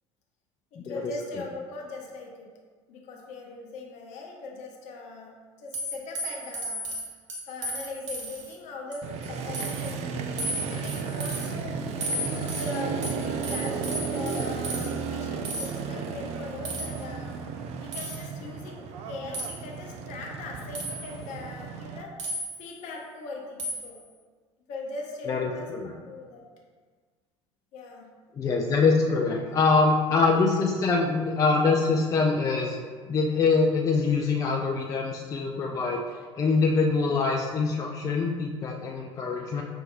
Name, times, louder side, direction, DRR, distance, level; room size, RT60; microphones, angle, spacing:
voice 1, 0.7-2.5 2.9-6.8 7.5-11.8 12.2-17.4 17.8-22.1 22.6-24.0 24.7-25.7 26.0-26.4 27.7-28.1, left 3 dB, 50° left, 0 dB, 0.8 m, -40 dB
sound 1, 5.7-8.5 8.9-9.3 9.5-9.9 10.4-11.5 12.0-14.9 15.4-15.7 16.6-17.0 17.9-18.3 19.3-19.6 20.7-21.2 22.2-22.8 23.6-24.0, right 1 dB, 75° right, 0.7 m, -34 dB
Motorcycle, 9.0-22.0, right 5 dB, 45° right, 0.4 m, -34 dB
voice 2, 25.3-25.9 28.3-32.8 33.1-36.0 36.4-39.6, left 4 dB, 20° left, 0 dB, 0.3 m, -24 dB
5.6 x 2.6 x 2.4 m, 1.5 s
figure-of-eight pair, 65°, 15 cm